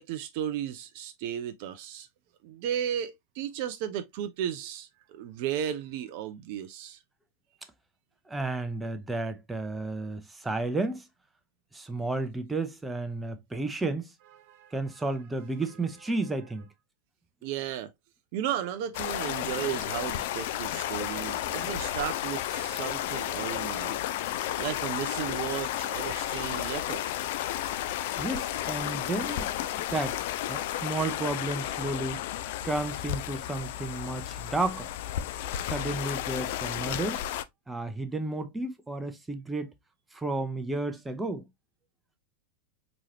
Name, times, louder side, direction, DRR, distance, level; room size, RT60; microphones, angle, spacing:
voice 1, 0.0-2.1 2.4-7.0 14.4-14.8 17.4-17.9 18.3-24.0 24.6-27.1, right 10 dB, 45° right, 0.4 m, -34 dB
voice 2, 8.3-11.1 11.7-14.1 14.7-16.7 28.2-30.2 30.5-32.2 32.6-34.9 35.5-37.2 37.7-39.7 40.1-41.4, right 2 dB, 10° right, 0.7 m, -32 dB
sound 1, 18.9-37.4, left 12 dB, 50° left, 0.4 m, -32 dB
4.6 x 3.0 x 2.8 m
figure-of-eight pair, 90°, 0 cm